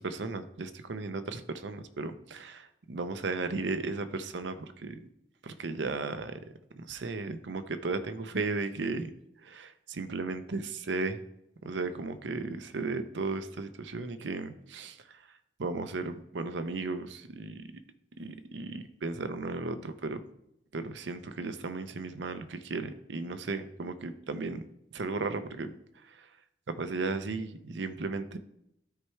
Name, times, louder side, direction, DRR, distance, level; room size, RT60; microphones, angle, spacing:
voice 1, 0.0-5.0 5.4-6.4 6.8-9.1 9.4-11.2 11.6-15.0 15.6-17.6 18.2-20.2 20.7-24.6 24.9-25.7 26.7-28.4, right 3 dB, 90° right, 10 dB, 0.7 m, -35 dB
13.0 x 4.6 x 3.2 m, 0.79 s
head